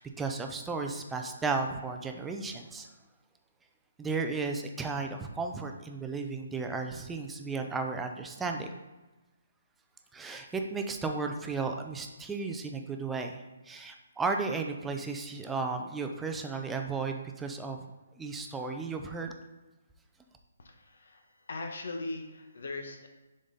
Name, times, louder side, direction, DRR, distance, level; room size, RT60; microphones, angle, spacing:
voice 1, 0.0-2.9 4.0-8.7 10.1-17.8 18.2-19.3, right 4 dB, 5° right, 4 dB, 0.4 m, -34 dB
voice 2, 20.6-23.1, left 2 dB, 70° left, 4 dB, 1.2 m, -40 dB
6.8 x 4.0 x 3.9 m, 1.1 s
hypercardioid pair, 165°, 0 cm